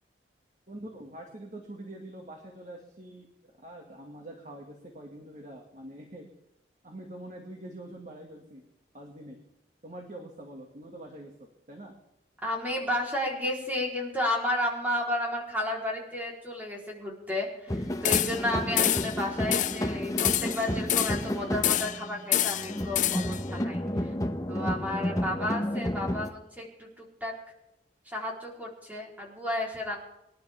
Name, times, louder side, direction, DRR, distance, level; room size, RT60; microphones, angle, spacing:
voice 1, 0.7-3.3 3.6-6.3 6.8-8.7 8.9-9.4 9.8-11.9, right 1 dB, 40° right, 1 dB, 2.0 m, -44 dB
voice 2, 12.4-24.1 24.5-27.4 28.1-30.0, left 1 dB, 10° right, -2 dB, 3.8 m, -32 dB
sound 1, 17.7-26.3, equal, 20° left, 1.0 m, -31 dB
sound 2, 18.0-18.5 18.8-19.2 19.5-19.8 20.2-21.3 21.6-22.0 22.3-23.4, left 12 dB, 45° left, 0.4 m, -27 dB
25.0 x 11.5 x 3.6 m, 0.86 s
head